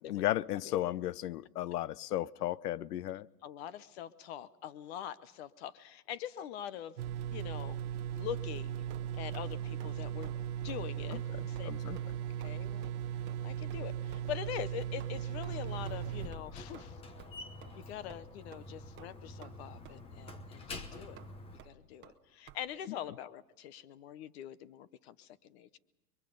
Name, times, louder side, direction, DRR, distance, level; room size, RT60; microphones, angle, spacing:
voice 1, 0.1-3.3 11.1-12.0, left 13 dB, 90° left, 22 dB, 0.7 m, -35 dB
voice 2, 3.4-7.0 7.3-7.8 8.2-8.8 9.1-10.3 10.6-11.7 12.4-12.9 13.4-17.0 17.7-21.2 21.6-25.8, left 10 dB, 45° left, 16 dB, 0.8 m, -43 dB
sound 1, 7.0-16.3, right 10 dB, 75° right, 0.9 m, -38 dB
sound 2, 8.9-9.5 9.8-10.0 10.2-10.4 10.7-10.8 11.1-11.3 11.6-11.7 12.0-12.1 12.4-12.6 12.8-12.9 13.3-13.4 13.7-13.8 14.1-14.3 14.6-14.7 15.0-15.1 15.4-15.5 15.9-16.0 16.3-16.5 16.7-16.9 17.2-17.3 17.6-17.7 18.1-18.2 18.5-18.7 19.0-19.5 19.8-20.0 20.3-20.4 20.7-20.9 21.2-21.3 21.6-21.7 22.0-22.2 22.5-22.6, right 12 dB, 25° right, 1.2 m, -53 dB
Slam, 15.5-21.7, left 2 dB, 10° left, 0.9 m, -47 dB
29.0 x 23.0 x 5.3 m, 1.0 s
supercardioid pair, 150°, 46 cm